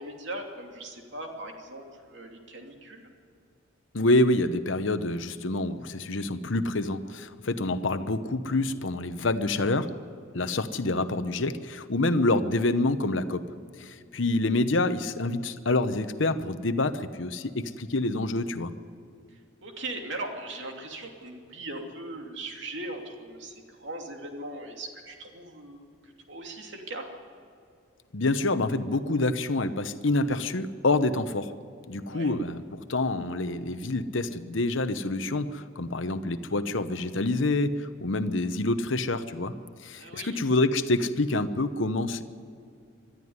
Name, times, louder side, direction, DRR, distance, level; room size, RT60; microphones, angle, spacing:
voice 1, 0.0-3.1 14.1-14.2 19.6-27.1 32.1-32.3 39.9-40.4, right 2 dB, 65° right, 2 dB, 2.8 m, -39 dB
voice 2, 3.9-9.9 10.3-13.4 13.8-18.7 28.1-31.5 31.9-39.5 39.8-42.2, left 2 dB, 70° left, 11 dB, 1.0 m, -27 dB
22.0 x 13.0 x 9.6 m, 2.4 s
head